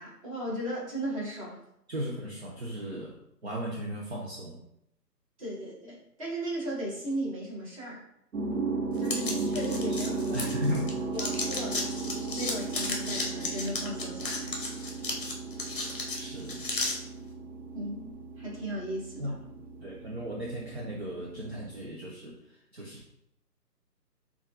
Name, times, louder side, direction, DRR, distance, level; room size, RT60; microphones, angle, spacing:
voice 1, 0.0-1.6 5.4-8.0 9.0-10.4 11.1-11.9 12.3-14.6 17.7-18.1 18.4-19.1, right 1 dB, 20° right, -5 dB, 1.0 m, -36 dB
voice 2, 1.9-3.2 3.4-4.6 9.9-11.0 16.1-16.7 19.2-19.4 19.8-23.0, equal, 40° right, -3 dB, 0.6 m, -36 dB
sound 1, 8.3-21.9, right 3 dB, 65° right, 1.0 m, -36 dB
sound 2, 9.0-10.9 11.2-16.9, left 2 dB, 35° left, 0.7 m, -34 dB
6.9 x 2.4 x 2.6 m, 0.78 s
figure-of-eight pair, 150°, 49 cm